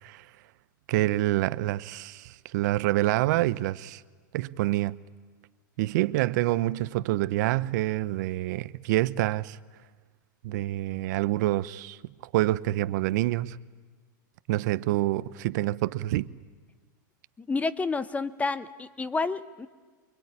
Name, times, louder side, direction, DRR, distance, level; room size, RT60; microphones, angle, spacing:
voice 1, 0.9-4.0 4.3-5.0 5.8-9.6 10.4-12.0 12.3-13.6 14.5-16.3, right 16 dB, 60° right, 0.8 m, -27 dB
voice 2, 17.4-19.7, left 3 dB, 15° left, 0.9 m, -30 dB
24.0 x 22.5 x 9.8 m
hypercardioid pair, 110°, 11 cm